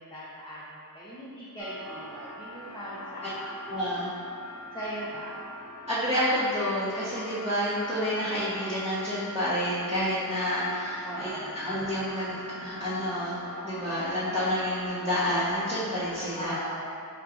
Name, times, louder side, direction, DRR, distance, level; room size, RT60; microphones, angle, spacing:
voice 1, 0.0-3.5 4.7-5.4 11.0-11.6 16.4-17.0, right 1 dB, 10° left, -9 dB, 0.7 m, -39 dB
sound 1, 1.6-16.4, left 1 dB, 45° left, 0.7 m, -43 dB
voice 2, 3.7-4.1 5.9-13.4 13.6-16.6, equal, 15° right, -13 dB, 1.0 m, -29 dB
4.5 x 2.4 x 3.8 m, 2.4 s
wide cardioid pair, 45°, 37 cm